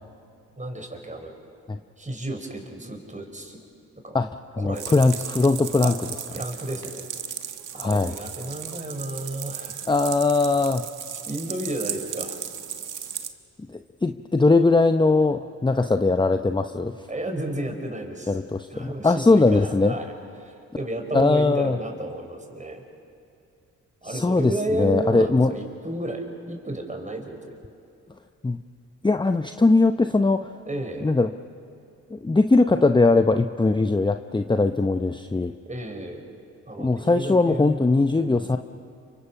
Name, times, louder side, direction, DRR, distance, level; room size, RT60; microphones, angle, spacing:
voice 1, 0.6-1.3 2.0-3.6 4.0-4.2 4.6-5.1 5.8-5.9 6.3-7.1 7.7-9.9 11.3-12.4 17.1-18.3 18.7-20.1 20.4-22.8 24.0-27.6 30.7-31.1 35.6-36.3 36.7-37.8 38.1-38.6, right 1 dB, 20° right, 4 dB, 5.1 m, -32 dB
voice 2, 4.5-5.9 7.8-8.1 9.9-10.8 13.7-17.0 18.3-19.9 21.1-21.8 24.0-25.5 28.4-28.6 29.0-30.5 31.0-31.3 32.1-35.5 36.8-38.6, left 3 dB, 15° left, 7 dB, 0.8 m, -20 dB
sound 1, 4.7-13.3, right 8 dB, 60° right, 1.5 m, -35 dB
29.0 x 24.5 x 5.8 m, 2.4 s
supercardioid pair, 50°, 35 cm